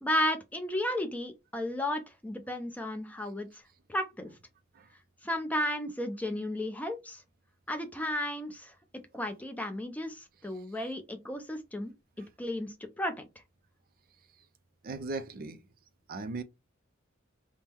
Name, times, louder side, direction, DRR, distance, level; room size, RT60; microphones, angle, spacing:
voice 1, 0.0-3.6 3.9-4.3 5.2-7.2 7.7-8.7 9.1-11.9 12.4-13.2, left 1 dB, 10° left, 0.5 m, -33 dB
voice 2, 14.8-15.6 16.1-16.4, right 3 dB, 45° right, 0.4 m, -37 dB
3.5 x 2.1 x 4.4 m
head